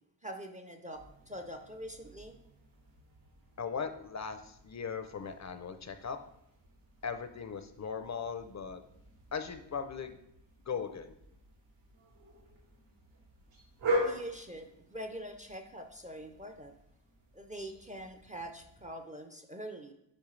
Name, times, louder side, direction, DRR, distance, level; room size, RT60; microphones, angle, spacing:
voice 1, 0.2-2.4 14.0-16.8 17.3-19.9, right 1 dB, 20° right, 5 dB, 0.4 m, -44 dB
sound 1, 0.9-18.9, equal, 80° right, 2.2 m, -43 dB
voice 2, 3.6-6.2 7.0-8.8 9.3-10.2 10.7-11.1, left 6 dB, 40° left, 9 dB, 0.4 m, -38 dB
8.4 x 5.4 x 3.2 m, 0.80 s
wide cardioid pair, 165°, 46 cm